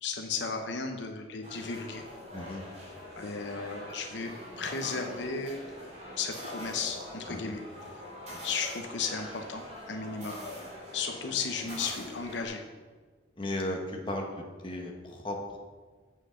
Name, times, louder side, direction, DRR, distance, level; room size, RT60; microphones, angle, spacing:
voice 1, 0.0-2.0 3.2-5.6 6.2-7.6 8.4-10.4 10.9-12.6, left 5 dB, 70° left, 4 dB, 0.8 m, -35 dB
sound 1, 1.4-12.5, left 1 dB, 35° right, 2.4 m, -43 dB
voice 2, 13.4-15.6, left 1 dB, 25° left, 1 dB, 1.2 m, -36 dB
7.7 x 6.3 x 6.4 m, 1.4 s
head